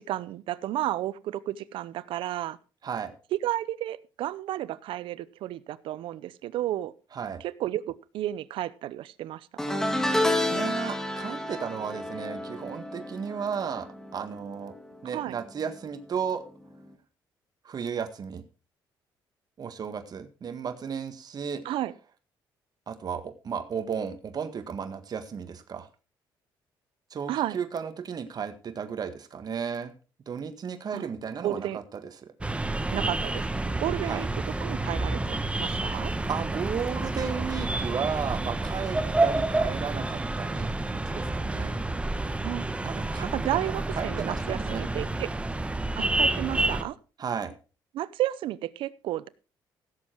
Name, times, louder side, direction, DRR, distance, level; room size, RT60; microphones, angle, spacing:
voice 1, 0.0-2.6 3.3-6.9 7.4-9.8 15.1-15.4 21.6-21.9 27.3-27.6 30.9-31.1 31.4-31.8 32.9-34.3 34.6-36.1 42.4-42.7 43.3-45.3 46.0-47.0 47.9-49.3, right 13 dB, 80° right, 18 dB, 0.7 m, -32 dB
sound 1, 9.6-15.0 15.2-15.6 16.8-16.9, left 1 dB, 5° left, 2.2 m, -30 dB
voice 2, 10.5-13.9 14.1-14.7 15.0-16.4 17.6-18.4 19.6-21.6 22.9-25.9 27.1-29.9 30.3-31.7 34.1-34.2 36.3-41.8 42.8-43.3 44.0-44.9 47.2-47.5, right 7 dB, 50° right, 9 dB, 1.7 m, -34 dB
sound 2, 32.4-46.8, right 2 dB, 15° right, 1.3 m, -29 dB
16.5 x 7.4 x 4.6 m, 0.34 s
cardioid pair, 90°, 9 cm